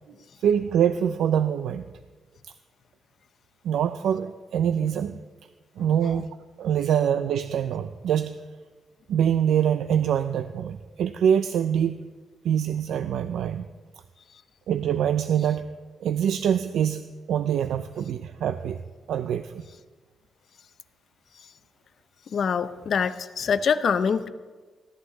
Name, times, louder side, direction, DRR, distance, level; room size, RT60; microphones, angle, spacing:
voice 1, 0.4-1.8 2.4-2.5 3.6-5.2 5.8-6.3 6.6-8.4 9.1-12.0 12.4-13.7 14.7-15.7 16.0-18.8 19.1-19.7, right 9 dB, 85° right, 11 dB, 0.4 m, -24 dB
voice 2, 22.3-24.3, left 6 dB, 55° left, 13 dB, 0.6 m, -24 dB
15.5 x 11.0 x 3.8 m, 1.4 s
cardioid pair, 110°, 0 cm